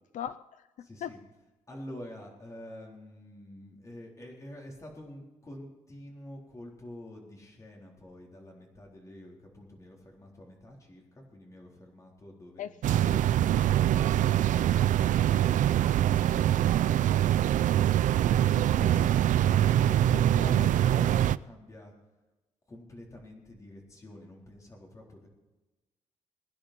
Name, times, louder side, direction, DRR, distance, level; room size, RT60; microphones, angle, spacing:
voice 1, 0.1-1.1 12.6-13.2 18.6-19.1 20.4-20.7, left 10 dB, 85° left, 13 dB, 0.5 m, -40 dB
voice 2, 0.8-1.2 1.7-12.7 13.7-18.8 19.1-21.9 22.7-25.3, left 1 dB, 25° left, -1 dB, 3.9 m, -48 dB
sound 1, 12.8-21.4, right 12 dB, 90° right, 0.4 m, -24 dB
22.5 x 10.0 x 4.4 m, 1.1 s
wide cardioid pair, 150°, 13 cm